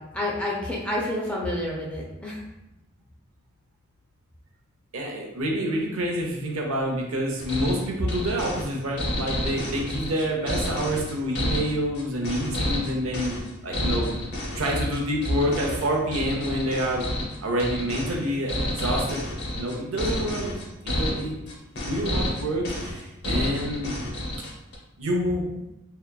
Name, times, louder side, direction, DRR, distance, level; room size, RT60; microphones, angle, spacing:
voice 1, 0.0-2.4, left 1 dB, 5° left, -4 dB, 0.3 m, -29 dB
voice 2, 4.9-14.1 14.5-17.0 17.4-19.2 19.5-20.5 20.8-21.3 21.8-24.0 25.0-25.5, equal, 80° right, 0 dB, 0.6 m, -27 dB
sound 1, 7.4-24.8, left 1 dB, 50° left, 0.6 m, -30 dB
2.8 x 2.2 x 2.2 m, 0.91 s
head